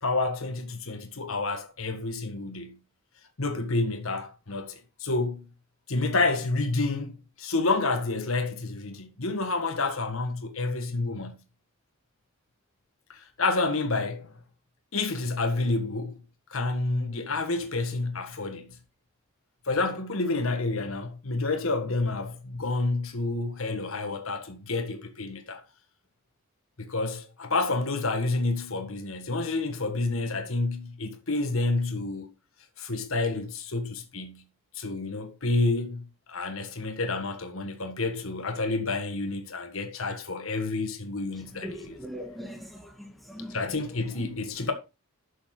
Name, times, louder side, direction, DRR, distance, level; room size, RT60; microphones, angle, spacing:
voice 1, 0.0-2.8 3.4-5.5 5.9-11.4 13.1-14.3 14.9-16.2 16.5-18.8 19.7-25.6 26.8-32.3 32.8-34.4 34.7-42.0 43.5-44.7, left 3 dB, 70° left, 1.7 m, -29 dB
voice 2, 41.4-43.6 44.2-44.3 44.6-44.7, equal, ahead, 2.1 m, -41 dB
11.0 x 6.9 x 3.9 m
head